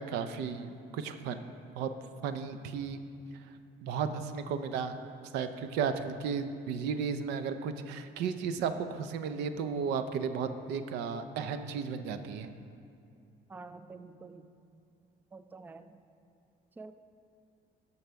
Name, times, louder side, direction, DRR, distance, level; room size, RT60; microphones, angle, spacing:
voice 1, 0.0-1.4 1.8-1.9 2.2-3.0 3.8-5.0 5.3-12.5, right 6 dB, 90° right, 10 dB, 0.6 m, -34 dB
voice 2, 13.5-14.5 15.3-16.0 16.8-16.9, right 3 dB, 10° right, 11 dB, 0.3 m, -48 dB
13.0 x 5.5 x 4.6 m, 2.5 s
cardioid pair, 110°, 17 cm